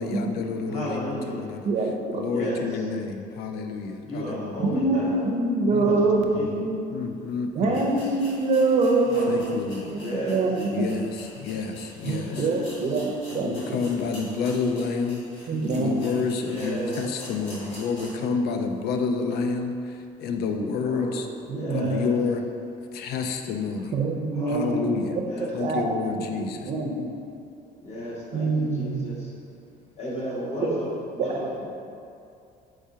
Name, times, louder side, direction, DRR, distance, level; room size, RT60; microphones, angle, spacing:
voice 1, 0.0-1.7 2.2-5.1 5.7-6.0 6.3-6.5 6.9-7.8 9.3-10.0 10.7-12.4 13.3-15.2 15.7-19.8 20.2-21.3 21.7-22.5 22.9-24.0 24.5-25.2 25.5-26.7, left 5 dB, 70° left, 6 dB, 0.4 m, -29 dB
voice 2, 0.7-1.5 2.3-2.8 3.9-5.2 5.8-6.0 6.3-6.6 7.6-7.9 9.1-9.6 10.0-10.4 12.2-12.7 16.4-17.0 20.8-22.1 24.3-24.8 25.2-25.5 27.8-29.3 30.0-31.7, equal, 40° left, -6 dB, 1.3 m, -33 dB
voice 3, 1.6-2.6 4.6-6.8 7.5-10.8 12.0-13.6 15.5-16.0 21.5-22.1 23.9-25.2 25.6-27.0 28.3-29.2 30.7-30.8 31.2-31.4, right 3 dB, 45° right, 2 dB, 0.5 m, -25 dB
sound 1, 7.2-7.3 7.7-18.3 18.7-18.8 19.3-19.4, equal, 90° left, 1.4 m, -45 dB
4.7 x 3.7 x 2.7 m, 2.5 s
cardioid pair, 110°, 17 cm